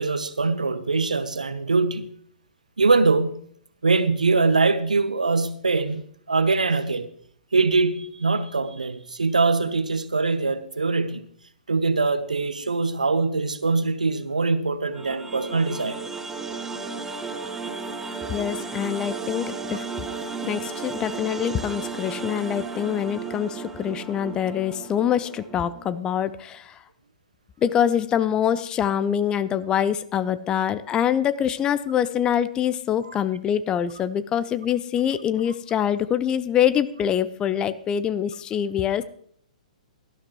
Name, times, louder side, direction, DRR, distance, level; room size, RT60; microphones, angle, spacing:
voice 1, 0.0-2.2 2.8-3.4 3.8-7.1 7.5-11.3 11.7-16.0, right 3 dB, 75° right, 1.0 m, -23 dB
sound 1, 14.9-26.0, right 4 dB, 10° right, 1.3 m, -34 dB
voice 2, 18.3-20.1 20.4-26.8 27.6-39.0, left 9 dB, 20° left, 0.5 m, -25 dB
17.5 x 12.0 x 3.1 m
figure-of-eight pair, 115°, 4 cm